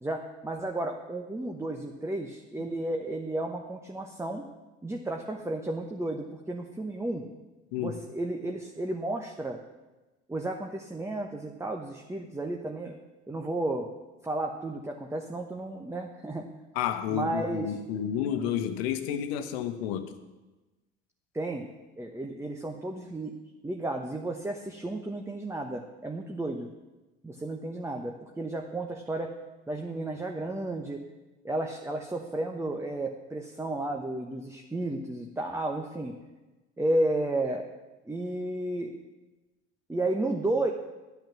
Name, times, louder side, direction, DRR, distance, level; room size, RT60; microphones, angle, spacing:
voice 1, 0.0-4.4 4.8-7.2 7.8-9.6 10.3-13.0 13.3-13.9 14.2-16.5 17.1-17.7 21.3-21.7 22.0-23.3 23.6-26.7 27.2-29.3 29.7-31.0 31.4-36.1 36.8-37.6 38.0-39.0 39.9-40.7, right 2 dB, 10° right, 2 dB, 1.1 m, -32 dB
voice 2, 16.7-20.1, left 9 dB, 65° left, 8 dB, 1.3 m, -30 dB
11.5 x 9.2 x 6.0 m, 1.1 s
figure-of-eight pair, 60°, 34 cm